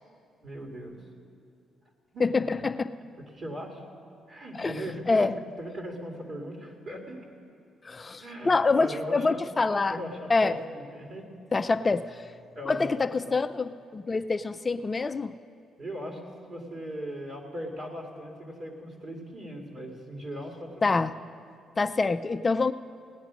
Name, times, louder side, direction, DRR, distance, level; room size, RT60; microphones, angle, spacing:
voice 1, 0.4-1.0 2.1-2.3 3.3-3.8 4.3-5.3 5.6-7.2 8.2-9.4 9.7-11.3 12.6-13.5 15.8-21.0, equal, 50° right, 1 dB, 2.4 m, -39 dB
voice 2, 2.2-2.9 4.5-4.8 5.1-5.3 7.8-10.0 10.3-10.6 11.5-12.3 12.7-15.4 20.8-21.1 21.8-22.7, left 3 dB, 30° left, 11 dB, 0.4 m, -26 dB
17.5 x 9.4 x 6.2 m, 2.5 s
cardioid pair, 90°, 0 cm